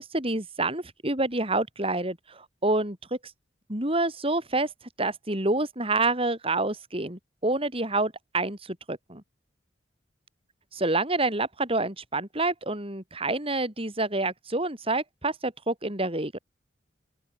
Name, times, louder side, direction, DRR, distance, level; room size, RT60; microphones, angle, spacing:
voice 1, 0.0-3.0 3.7-4.7 5.0-9.2 10.7-16.4, right 2 dB, 30° right, 6.5 m, -28 dB
open air
head